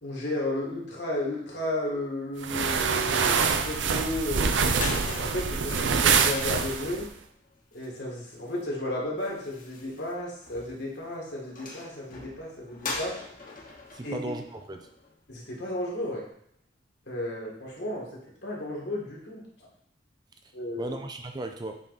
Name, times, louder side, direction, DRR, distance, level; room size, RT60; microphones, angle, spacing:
voice 1, 0.0-4.5 5.1-7.1 7.7-13.2 14.0-14.2 15.3-16.2 17.1-18.1 18.4-19.4 20.5-21.0, left 1 dB, 65° left, -3 dB, 2.0 m, -33 dB
sound 1, 2.4-7.1, right 5 dB, 85° right, 0.6 m, -25 dB
sound 2, 4.6-15.4, left 3 dB, 45° left, 1.3 m, -42 dB
voice 2, 13.9-14.9 20.8-21.8, right 2 dB, 20° right, 5 dB, 0.5 m, -36 dB
7.4 x 3.9 x 4.1 m, 0.68 s
head